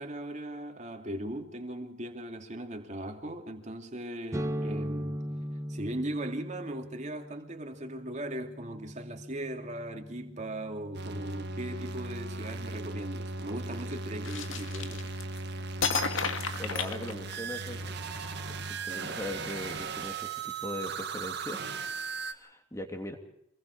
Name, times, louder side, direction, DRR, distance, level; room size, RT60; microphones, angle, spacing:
voice 1, 0.0-5.2 5.7-15.1, right 1 dB, 35° right, 2.7 m, -38 dB
sound 1, 4.3-11.9, equal, 15° right, 1.2 m, -39 dB
sound 2, 10.9-22.3, right 3 dB, 60° right, 1.9 m, -37 dB
sound 3, 14.2-15.4 15.8-17.7, left 5 dB, 75° left, 2.1 m, -32 dB
voice 2, 16.6-17.8 18.6-23.2, left 1 dB, 15° left, 3.0 m, -40 dB
27.0 x 21.5 x 4.8 m
head